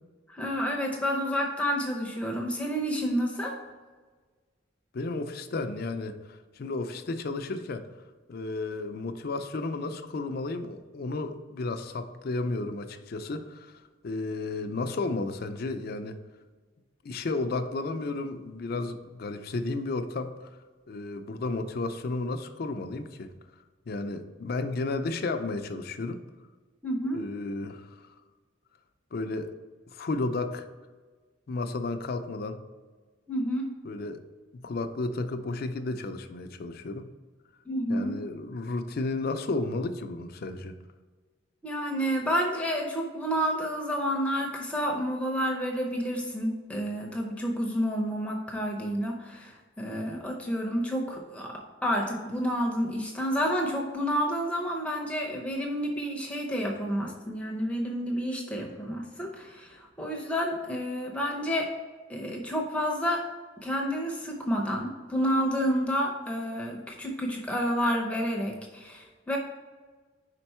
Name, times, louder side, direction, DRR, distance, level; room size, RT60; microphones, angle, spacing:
voice 1, 0.3-3.6 26.8-27.2 33.3-33.6 37.7-38.1 41.6-61.7 62.1-63.2 63.6-69.4, equal, 5° left, 0 dB, 0.6 m, -29 dB
voice 2, 4.9-7.9 8.3-16.2 17.0-20.5 20.9-23.3 23.9-26.2 27.1-28.1 29.1-29.5 29.9-30.7 31.5-32.6 33.8-34.2 34.5-37.1 37.9-40.8, left 3 dB, 50° left, 8 dB, 0.4 m, -33 dB
5.1 x 4.5 x 4.2 m, 1.4 s
head